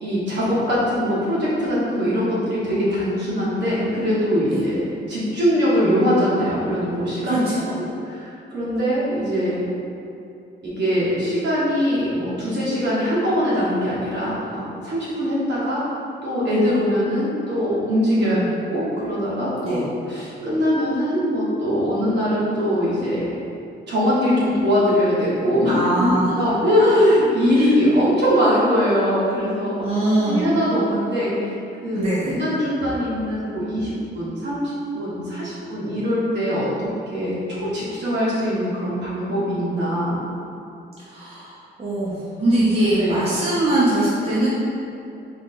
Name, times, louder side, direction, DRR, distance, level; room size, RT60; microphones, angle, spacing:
voice 1, 0.0-4.8 5.1-7.4 7.8-7.9 8.1-9.6 10.6-15.8 16.2-18.4 18.7-19.8 20.1-23.3 23.9-25.7 26.0-29.9 30.2-31.5 31.8-36.7 37.1-40.2 43.0-43.3, equal, 65° right, -8 dB, 1.5 m, -22 dB
voice 2, 7.2-7.7 18.2-18.5 19.6-19.8 25.7-26.3 27.6-27.7 29.8-30.5 31.9-32.4 41.1-44.5, right 1 dB, 30° right, -9 dB, 1.0 m, -22 dB
3.8 x 3.5 x 3.8 m, 2.7 s
cardioid pair, 115°, 20 cm